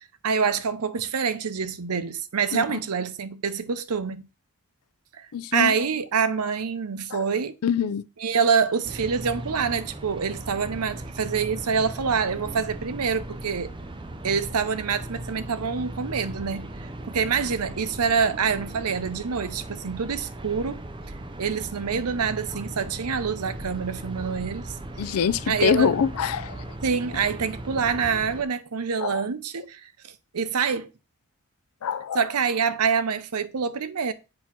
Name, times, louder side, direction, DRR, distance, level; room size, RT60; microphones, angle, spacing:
voice 1, 0.2-4.2 5.1-7.5 8.2-13.7 14.2-16.7 17.0-20.8 21.4-25.0 25.5-26.0 26.8-30.9 32.1-34.1, right 6 dB, 85° right, 0.7 m, -26 dB
voice 2, 5.3-5.7 7.1-7.3 7.6-8.0 25.0-26.6 29.0-29.2 31.8-32.2, left 7 dB, 75° left, 0.4 m, -25 dB
sound 1, 8.8-28.4, right 1 dB, 20° right, 0.5 m, -38 dB
7.7 x 2.8 x 5.8 m
head